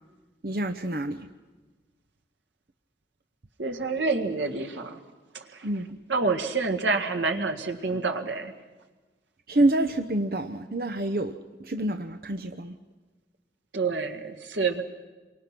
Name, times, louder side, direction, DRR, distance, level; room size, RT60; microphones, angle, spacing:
voice 1, 0.4-1.3 5.6-5.9 9.5-11.3 11.6-12.7, right 1 dB, 55° right, 6 dB, 0.8 m, -27 dB
voice 2, 3.6-5.0 5.3-5.7 6.1-8.5 13.7-14.8, right 4 dB, 90° right, 5 dB, 2.0 m, -28 dB
28.5 x 24.0 x 6.0 m, 1.3 s
head